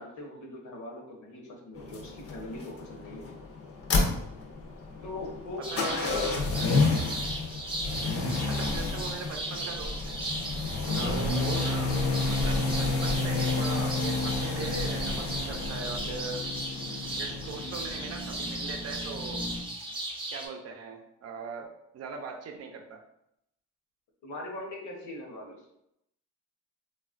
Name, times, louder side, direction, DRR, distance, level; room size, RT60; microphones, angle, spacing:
voice 1, 0.0-3.3 5.0-6.8 10.9-11.2 24.2-25.6, left 2 dB, 70° left, -1 dB, 0.9 m, -40 dB
sound 1, 1.8-19.6, left 3 dB, 50° left, 0.6 m, -30 dB
sound 2, 5.6-20.5, right 1 dB, 15° right, 0.6 m, -37 dB
voice 2, 5.7-6.2 8.4-10.2 10.8-12.0 12.2-16.4 17.1-19.4 20.3-23.0, right 4 dB, 55° right, 4 dB, 0.6 m, -40 dB
3.1 x 2.3 x 2.4 m, 0.79 s
cardioid pair, 90°, 30 cm